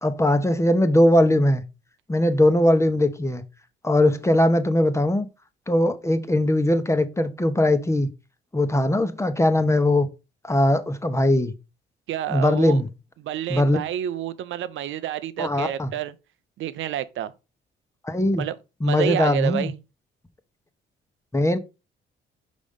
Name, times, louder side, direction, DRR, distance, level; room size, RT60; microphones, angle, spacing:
voice 1, 0.0-1.6 2.1-3.4 3.8-5.3 5.7-8.1 8.5-10.1 10.4-11.5 12.3-12.9 13.5-13.8 15.4-15.9 18.0-18.4 18.8-19.7 21.3-21.6, left 1 dB, 15° left, 1.0 m, -20 dB
voice 2, 12.1-12.8 13.2-16.1 16.6-17.3 18.4-18.5 18.8-19.8, right 11 dB, 80° right, 0.7 m, -29 dB
5.2 x 5.1 x 5.4 m
cardioid pair, 90°, 20 cm